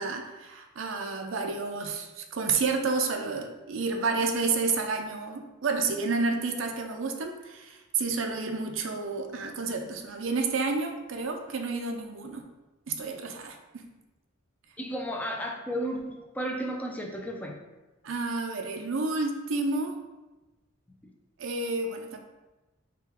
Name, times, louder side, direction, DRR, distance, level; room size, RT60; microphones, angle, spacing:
voice 1, 0.0-12.5 12.9-13.9 18.0-19.9 21.4-22.2, right 4 dB, 75° right, 4 dB, 0.5 m, -30 dB
voice 2, 14.8-17.6 21.0-21.1, equal, 10° left, 0 dB, 0.4 m, -33 dB
4.5 x 2.2 x 3.6 m, 1.1 s
head